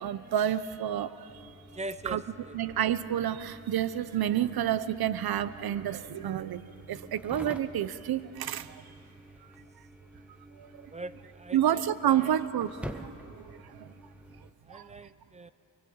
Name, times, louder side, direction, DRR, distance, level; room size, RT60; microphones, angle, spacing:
voice 1, 0.0-1.1 2.0-2.2 2.5-6.6 6.9-8.7 11.5-12.7 13.0-13.1 14.7-14.8, right 11 dB, 85° right, 15 dB, 0.8 m, -29 dB
sound 1, 1.3-14.5, equal, 5° right, 1.2 m, -49 dB
voice 2, 1.7-2.2 2.5-2.6 10.9-11.6 12.1-12.3 14.7-15.5, right 2 dB, 20° right, 13 dB, 0.7 m, -41 dB
26.5 x 20.0 x 8.7 m, 2.9 s
wide cardioid pair, 110°, 36 cm